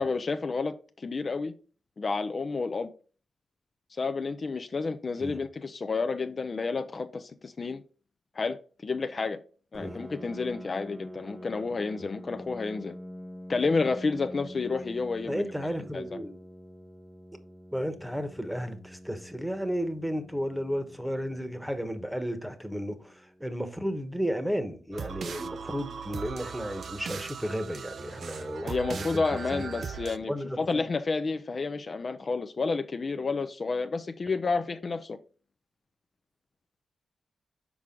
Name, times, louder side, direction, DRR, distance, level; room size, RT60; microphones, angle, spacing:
voice 1, 0.0-1.5 2.0-2.9 3.9-7.8 8.4-8.6 8.8-9.4 9.7-12.9 13.5-15.4 15.9-16.2 28.6-35.2, left 4 dB, 45° left, 0.5 m, -30 dB
Piano, 9.7-25.2, equal, 30° right, 0.8 m, -46 dB
voice 2, 15.3-16.3 17.7-29.6 30.3-30.6, equal, 5° right, 1.1 m, -33 dB
sound 1, 24.9-30.2, right 6 dB, 65° right, 0.4 m, -39 dB
6.0 x 4.7 x 3.7 m
cardioid pair, 75°, 0 cm